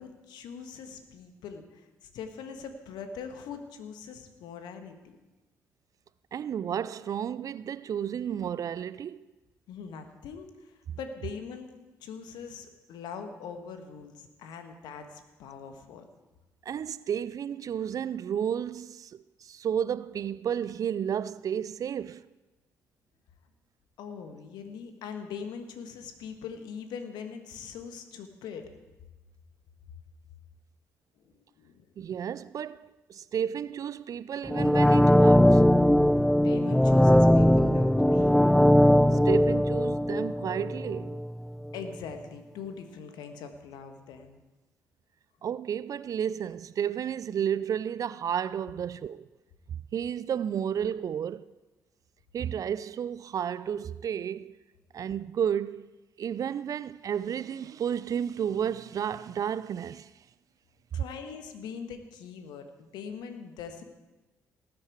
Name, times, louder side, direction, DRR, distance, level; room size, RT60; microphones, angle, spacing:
voice 1, 0.0-1.9 2.1-5.1 9.7-10.5 11.0-11.7 12.0-16.1 24.0-28.6 31.6-31.9 36.4-38.5 41.7-44.4 60.9-63.8, left 6 dB, 65° left, 1.5 m, -42 dB
voice 2, 6.3-9.2 16.7-22.3 32.0-35.6 39.2-41.2 45.4-49.3 49.9-51.5 52.3-54.6 54.9-55.9 56.2-60.1, right 8 dB, 50° right, 0.4 m, -32 dB
sound 1, 34.5-41.3 41.6-41.7, left 1 dB, 5° left, 0.5 m, -20 dB
19.0 x 8.7 x 4.7 m
hypercardioid pair, 45°, 8 cm